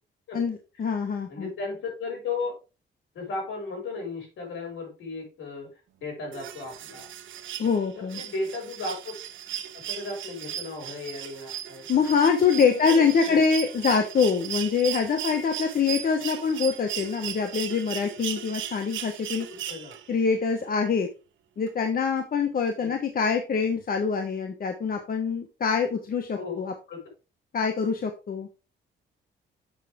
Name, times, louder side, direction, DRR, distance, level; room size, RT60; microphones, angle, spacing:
voice 1, 0.3-1.5 7.6-8.2 11.9-19.5 20.1-21.1 21.6-26.7 27.5-28.5, left 5 dB, 45° left, 5 dB, 1.2 m, -25 dB
voice 2, 1.3-2.6 3.1-5.7 6.0-7.1 7.9-9.1 9.7-12.0 12.7-13.4 19.5-20.0 22.8-22.9 26.3-27.0, left 3 dB, 75° left, 1 dB, 5.4 m, -35 dB
sound 1, 6.3-20.2 21.7-21.8, right 11 dB, 75° right, 1.0 m, -37 dB
7.6 x 6.4 x 3.6 m, 0.31 s
cardioid pair, 90°, 20 cm